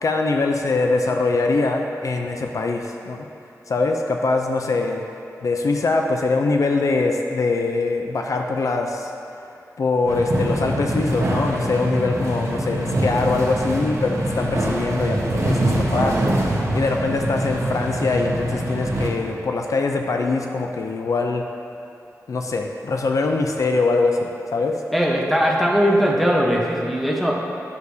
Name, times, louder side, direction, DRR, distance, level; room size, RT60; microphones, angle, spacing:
voice 1, 0.0-3.3 3.7-5.0 5.4-9.1 9.8-16.2 16.7-21.4 22.3-24.8, left 3 dB, 65° left, 3 dB, 0.4 m, -22 dB
sound 1, 10.1-19.1, right 1 dB, 55° right, 1.1 m, -24 dB
voice 2, 24.9-27.3, equal, ahead, -2 dB, 0.9 m, -19 dB
9.4 x 6.5 x 2.7 m, 2.8 s
wide cardioid pair, 90°, 6 cm